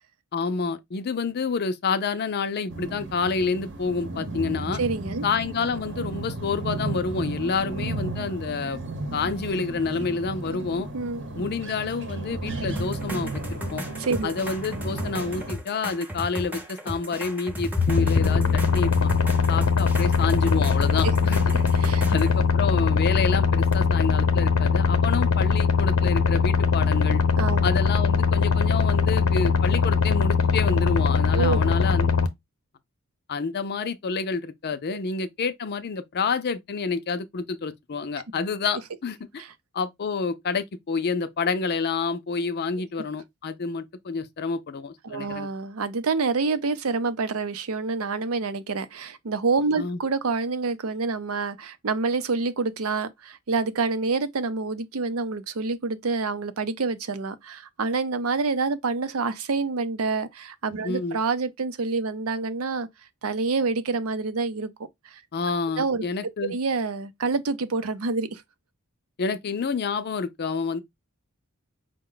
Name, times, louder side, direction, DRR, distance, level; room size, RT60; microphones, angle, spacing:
voice 1, 0.3-4.8 5.2-8.8 9.1-10.9 11.4-13.8 14.2-19.1 19.5-21.4 22.1-27.2 27.6-32.1 33.3-39.4 39.7-45.5 49.8-50.0 60.8-61.2 65.3-66.5 69.2-70.8, left 4 dB, 50° left, 0.5 m, -28 dB
sound 1, 2.7-15.5, right 2 dB, 55° right, 0.9 m, -34 dB
voice 2, 4.7-5.2 10.9-11.2 14.0-14.3 21.7-22.0 27.4-27.6 31.3-31.7 34.9-35.0 39.4-39.5 45.0-62.9 63.2-64.7 65.0-65.2 65.8-66.0 66.5-68.4, right 4 dB, 75° right, 0.6 m, -27 dB
sound 2, 12.8-22.4 23.7-23.8, equal, 10° right, 0.7 m, -35 dB
sound 3, 17.8-32.3, left 5 dB, 80° left, 0.8 m, -21 dB
5.1 x 2.2 x 3.8 m
head